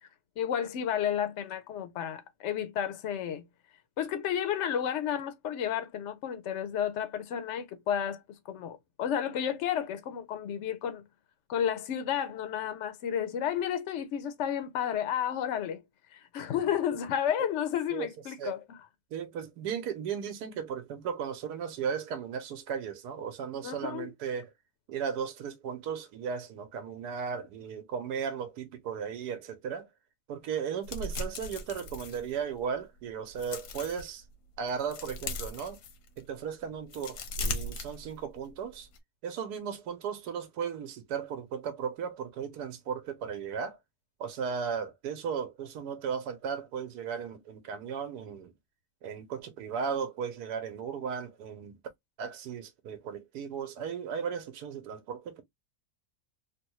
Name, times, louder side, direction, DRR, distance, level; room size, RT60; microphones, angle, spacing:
voice 1, 0.4-3.4 4.0-11.0 11.5-15.8 16.1-18.8 23.6-24.1, left 9 dB, 65° left, 0.7 m, -32 dB
voice 2, 19.1-24.5 24.9-29.9 30.3-34.2 34.6-35.8 36.2-38.9 39.2-43.8 44.2-48.5 49.0-51.7 52.2-55.4, right 7 dB, 90° right, 1.2 m, -36 dB
sound 1, 30.8-32.8 33.2-34.1 34.5-36.3 36.7-38.5 38.8-39.0, left 2 dB, 85° left, 1.3 m, -38 dB
3.3 x 2.2 x 3.0 m
omnidirectional pair, 1.7 m